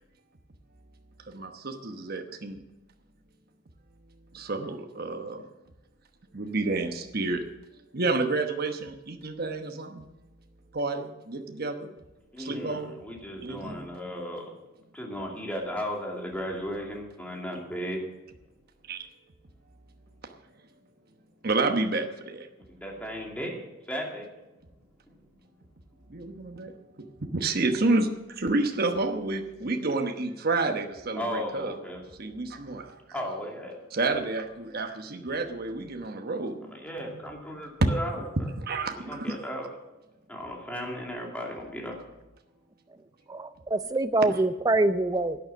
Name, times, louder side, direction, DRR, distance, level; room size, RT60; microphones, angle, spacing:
voice 1, 1.3-2.6 4.3-5.4 6.3-7.5 7.9-10.1 10.7-11.9 12.4-13.0 13.4-13.9 18.9-19.0 21.4-22.5 26.1-27.1 27.3-31.8 32.2-33.0 33.9-36.7 37.1-37.2 38.6-39.4 44.3-44.5, right 3 dB, 50° right, 5 dB, 1.1 m, -30 dB
voice 2, 12.3-14.5 14.9-18.0 22.7-24.3 31.1-32.0 33.1-33.8 36.7-38.5 39.0-39.7 40.3-42.0, equal, 5° left, -1 dB, 2.5 m, -35 dB
voice 3, 43.3-45.4, right 2 dB, 20° right, 12 dB, 0.5 m, -25 dB
11.5 x 9.3 x 7.3 m, 1.0 s
head